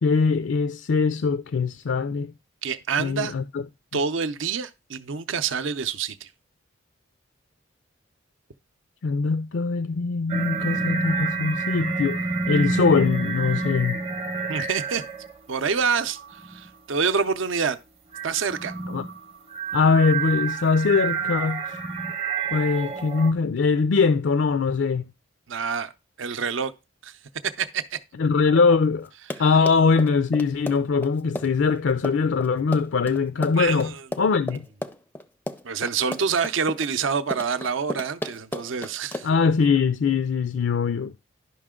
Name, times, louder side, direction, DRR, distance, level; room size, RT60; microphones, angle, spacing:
voice 1, 0.0-2.3 3.0-3.6 9.0-14.0 18.9-19.1 19.7-21.6 22.5-25.0 28.2-29.1 29.4-33.9 34.2-34.6 39.2-41.2, left 5 dB, 65° left, 0.4 m, -22 dB
voice 2, 2.6-3.3 3.9-6.3 14.5-15.0 15.5-16.2 16.5-17.8 18.2-18.7 25.5-25.9 26.2-26.7 27.0-27.1 27.6-28.0 33.6-34.0 35.6-39.3, right 6 dB, 70° right, 0.6 m, -26 dB
sound 1, 10.3-15.4 15.7-16.7 18.1-23.3, right 4 dB, 30° right, 0.7 m, -28 dB
Run, 29.1-39.5, left 1 dB, 10° left, 0.4 m, -34 dB
11.0 x 5.7 x 3.7 m
head